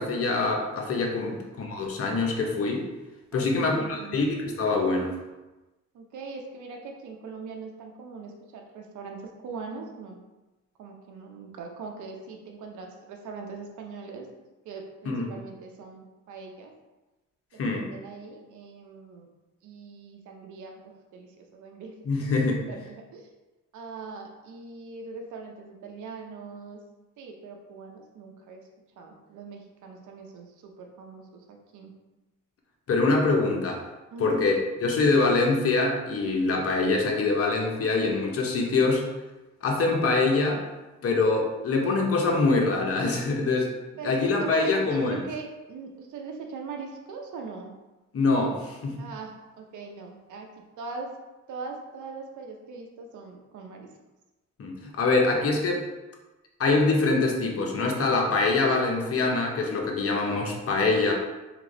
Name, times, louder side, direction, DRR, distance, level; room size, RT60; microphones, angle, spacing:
voice 1, 0.0-2.8 3.3-5.1 15.0-15.3 17.6-17.9 22.0-22.6 32.9-33.8 34.2-39.1 39.6-40.6 41.0-43.7 44.0-45.2 48.1-49.0 54.6-55.8 56.6-61.1, left 3 dB, 50° left, 0 dB, 1.0 m, -24 dB
voice 2, 3.3-4.3 5.9-9.2 9.4-10.2 10.8-14.3 14.6-16.7 17.5-19.3 19.6-22.0 22.4-23.3 23.7-26.8 27.2-28.6 29.0-31.9 34.1-34.5 44.0-47.7 49.0-51.1 51.5-53.9 60.2-60.3, right 4 dB, 75° right, 2 dB, 0.8 m, -41 dB
3.4 x 3.0 x 3.9 m, 1.1 s
cardioid pair, 90°, 30 cm